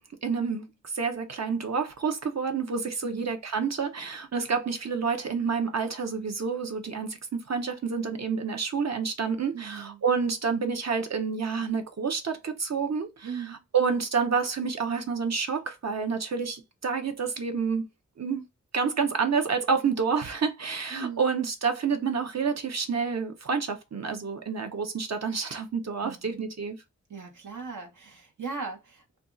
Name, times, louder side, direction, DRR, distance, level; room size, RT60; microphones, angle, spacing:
voice 1, 0.2-17.9 18.2-18.4 18.7-26.8, right 5 dB, 60° right, 0.8 m, -29 dB
voice 2, 9.5-10.0 13.2-13.6 20.9-21.2 26.0-26.5 27.1-29.2, right 5 dB, 80° right, 1.1 m, -39 dB
2.6 x 2.4 x 3.8 m
wide cardioid pair, 65°, 30 cm